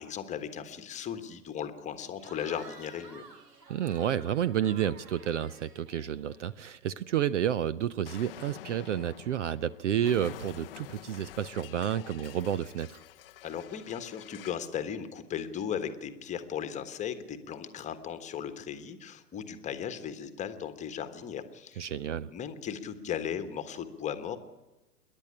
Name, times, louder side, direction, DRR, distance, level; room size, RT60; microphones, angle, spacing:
voice 1, 0.0-3.2 13.4-21.9 22.3-24.4, left 8 dB, 15° left, 9 dB, 1.3 m, -37 dB
Cheering / Crowd, 2.2-6.8, right 4 dB, 75° right, 3.4 m, -52 dB
voice 2, 3.7-13.0 21.8-22.3, right 10 dB, 50° right, 19 dB, 0.6 m, -30 dB
Explosion, 8.0-14.7, left 14 dB, 35° left, 0.6 m, -48 dB
27.5 x 11.0 x 10.0 m, 1.1 s
hypercardioid pair, 125°, 49 cm